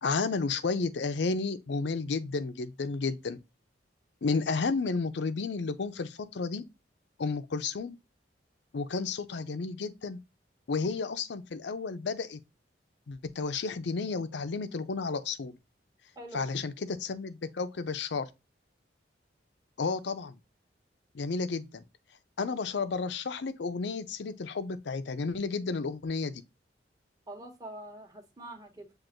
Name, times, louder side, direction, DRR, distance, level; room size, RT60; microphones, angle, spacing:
voice 1, 0.0-3.4 4.2-6.6 7.2-7.9 8.7-10.2 10.7-12.4 13.1-15.5 16.3-18.3 19.8-20.4 21.1-21.8 22.4-26.4, left 4 dB, 70° left, 0.5 m, -32 dB
voice 2, 16.2-16.6 27.3-28.9, right 1 dB, 20° right, 1.0 m, -45 dB
7.6 x 2.5 x 2.5 m
head